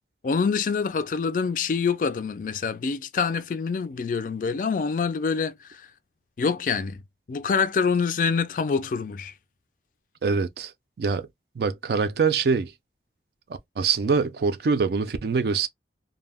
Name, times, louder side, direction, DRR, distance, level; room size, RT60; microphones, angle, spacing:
voice 1, 0.2-5.9 6.4-7.0 7.3-9.3, left 5 dB, 45° left, 0.3 m, -26 dB
voice 2, 10.2-10.7 11.0-11.3 11.6-12.7 13.8-15.7, right 5 dB, 60° right, 0.4 m, -24 dB
2.2 x 2.1 x 3.4 m
head